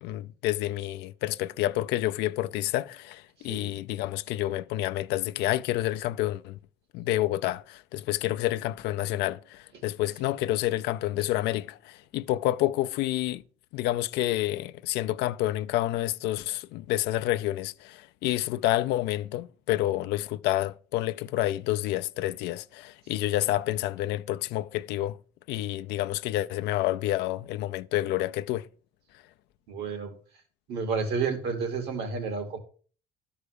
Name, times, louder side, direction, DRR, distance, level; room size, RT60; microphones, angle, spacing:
voice 1, 0.0-6.6 6.9-13.4 13.7-25.2 25.5-28.7, left 15 dB, 90° left, 0.5 m, -29 dB
voice 2, 29.7-30.1 30.7-32.6, right 5 dB, 75° right, 2.9 m, -31 dB
12.0 x 4.8 x 6.8 m
cardioid pair, 110°, 17 cm